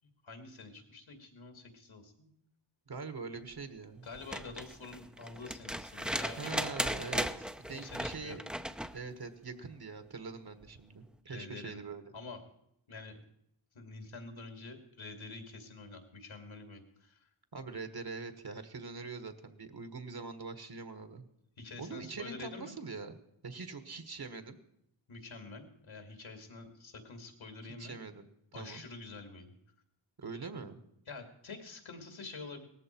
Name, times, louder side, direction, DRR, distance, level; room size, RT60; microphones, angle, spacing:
voice 1, 0.2-2.3 4.0-6.8 7.7-8.4 11.3-11.8 12.1-12.4 12.9-13.2 13.7-17.3 21.6-22.8 25.1-27.9 28.5-29.5 31.1-32.6, left 3 dB, 70° left, 5 dB, 2.6 m, -47 dB
voice 2, 2.9-4.1 6.4-8.4 8.9-12.1 17.5-21.3 21.8-23.1 23.4-24.6 27.6-28.3 28.6-28.8 30.2-30.8, right 4 dB, 50° right, 9 dB, 1.6 m, -43 dB
sound 1, 4.1-9.0 10.6-10.7, equal, ahead, 0.7 m, -37 dB
18.0 x 14.5 x 4.6 m, 0.76 s
wide cardioid pair, 70°, 48 cm